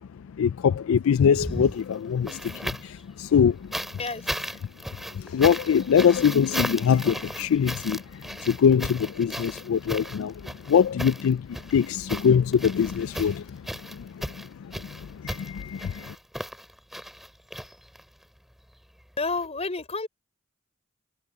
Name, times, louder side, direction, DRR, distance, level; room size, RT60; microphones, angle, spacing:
voice 1, 0.4-3.7 5.2-8.0 8.5-10.3 10.7-13.4 13.9-14.2 15.2-16.1, left 7 dB, 80° left, 0.4 m, -23 dB
sound 1, 1.3-3.0 3.7-18.2 19.4-19.5, equal, ahead, 2.9 m, -36 dB
voice 2, 4.0-4.4 19.2-20.1, left 3 dB, 30° left, 5.2 m, -30 dB
head